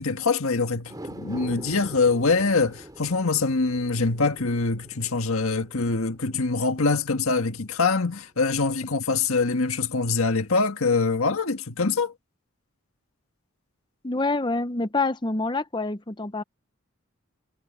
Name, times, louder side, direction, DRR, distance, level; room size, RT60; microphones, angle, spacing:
voice 1, 0.0-12.1, left 4 dB, 85° left, 1.6 m, -24 dB
sound 1, 0.8-7.3 7.7-7.8, right 1 dB, 20° right, 3.3 m, -44 dB
voice 2, 14.0-16.4, left 3 dB, 20° left, 0.7 m, -26 dB
head